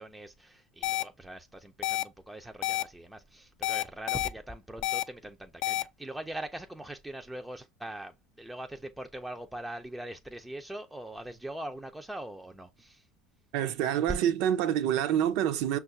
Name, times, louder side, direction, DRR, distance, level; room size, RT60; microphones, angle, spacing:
voice 1, 0.0-13.0, right 1 dB, 5° right, 0.4 m, -42 dB
sound 1, 0.8-1.0 1.8-2.0 2.6-2.8 3.6-4.3 4.8-5.0 5.6-5.8, left 16 dB, 60° left, 0.4 m, -29 dB
voice 2, 13.5-15.8, right 10 dB, 65° right, 0.5 m, -27 dB
5.5 x 2.3 x 2.6 m
supercardioid pair, 110°, 0 cm